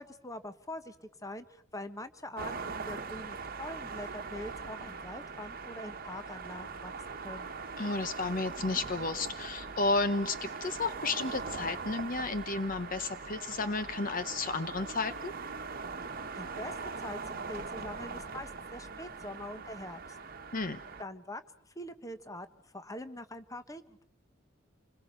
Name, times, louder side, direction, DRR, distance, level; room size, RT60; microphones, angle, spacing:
voice 1, 0.0-7.5 16.3-20.2 21.0-21.4 21.7-24.0, left 1 dB, 15° left, 10 dB, 1.2 m, -44 dB
sound 1, 2.4-21.0, right 4 dB, 45° right, 1.3 m, -41 dB
voice 2, 7.8-15.3 20.5-20.8, left 3 dB, 45° left, 11 dB, 0.9 m, -32 dB
27.5 x 21.0 x 6.7 m, 0.67 s
head